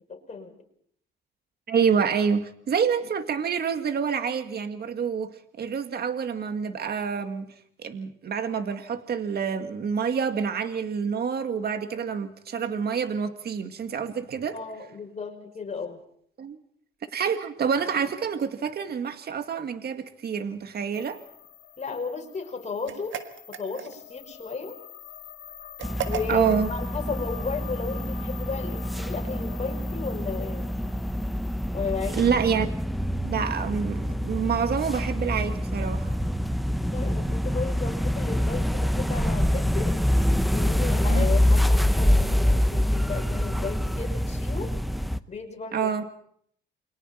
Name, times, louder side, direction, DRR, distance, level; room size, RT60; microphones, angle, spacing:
voice 1, 0.1-0.5 14.5-16.0 21.8-23.2 23.5-24.8 26.0-30.7 31.7-32.3 36.9-40.0 40.5-44.7 45.3-45.9, left 4 dB, 35° left, 3 dB, 5.5 m, -34 dB
voice 2, 1.7-5.3 5.6-7.5 7.8-14.6 16.4-16.6 17.1-21.2 26.3-26.7 32.2-32.7 33.2-36.2 41.1-41.3 45.7-46.0, right 7 dB, 55° right, 8 dB, 1.8 m, -27 dB
sound 1, 20.9-32.1, left 11 dB, 85° left, 2.8 m, -45 dB
sound 2, 22.8-24.2 25.8-26.6, right 9 dB, 75° right, 1.6 m, -35 dB
werken en traktor, 25.8-45.2, left 1 dB, ahead, 0.9 m, -26 dB
29.0 x 23.0 x 4.4 m, 0.64 s
cardioid pair, 90°, 20 cm